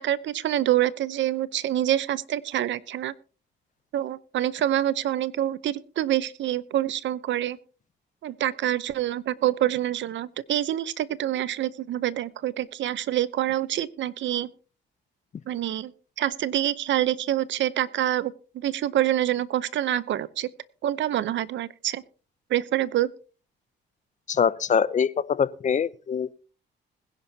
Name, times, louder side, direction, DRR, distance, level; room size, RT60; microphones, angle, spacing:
voice 1, 0.0-3.1 3.9-7.6 8.2-14.5 15.5-15.9 16.2-20.5 20.8-22.0 22.5-23.1, right 12 dB, 70° right, 0.8 m, -26 dB
voice 2, 24.3-26.3, left 7 dB, 40° left, 0.6 m, -24 dB
21.0 x 10.5 x 2.8 m
cardioid pair, 90°, 20 cm